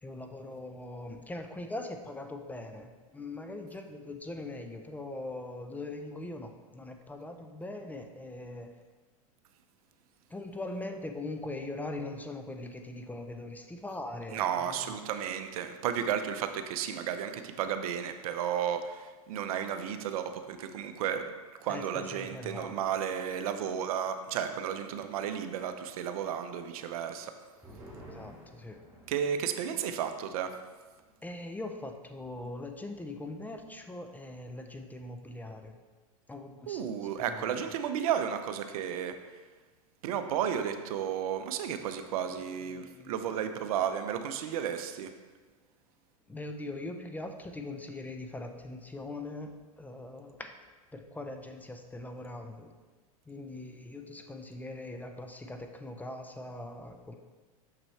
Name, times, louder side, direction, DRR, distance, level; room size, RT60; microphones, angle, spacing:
voice 1, 0.0-8.7 10.3-14.9 21.7-22.8 28.1-28.8 31.2-35.8 36.3-36.8 37.2-37.5 42.7-43.2 46.3-50.5 50.9-52.7 53.3-57.1, left 2 dB, 10° left, 5 dB, 0.4 m, -41 dB
voice 2, 14.3-21.3 21.6-27.3 29.1-30.5 36.7-39.2 40.0-45.1, right 8 dB, 70° right, 8 dB, 0.6 m, -33 dB
sound 1, 27.0-34.0 34.3-34.4 34.7-35.2, right 1 dB, 10° right, 1.8 m, -55 dB
6.5 x 6.1 x 3.2 m, 1.3 s
hypercardioid pair, 115°, 19 cm